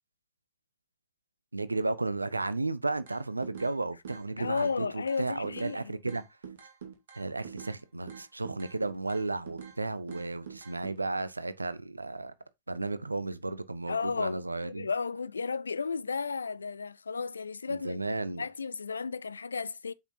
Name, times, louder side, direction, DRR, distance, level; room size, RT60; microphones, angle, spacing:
voice 1, 1.5-6.2 7.2-12.3 12.7-14.9 17.7-18.4, right 2 dB, 80° right, 0.6 m, -33 dB
sound 1, 3.1-3.7 4.0-5.8 6.1-7.8 8.1-9.8 10.1-11.0, right 7 dB, 60° right, 2.0 m, -45 dB
voice 2, 4.4-5.9 13.9-19.9, left 5 dB, 75° left, 0.3 m, -34 dB
8.0 x 5.6 x 2.7 m
figure-of-eight pair, 90°, 0 cm